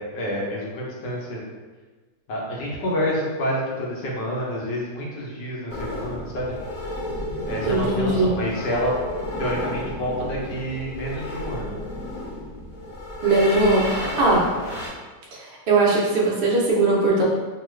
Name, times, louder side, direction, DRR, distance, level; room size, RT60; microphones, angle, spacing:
voice 1, 0.1-1.4 2.3-6.5 7.5-8.9 9.4-11.7, equal, 75° left, -3 dB, 1.3 m, -28 dB
sound 1, 5.7-14.9, left 1 dB, 45° left, 1.0 m, -32 dB
voice 2, 7.6-8.3 13.2-14.4 15.3-17.2, right 2 dB, 60° right, -4 dB, 0.7 m, -20 dB
3.0 x 2.3 x 3.1 m, 1.3 s
omnidirectional pair, 1.9 m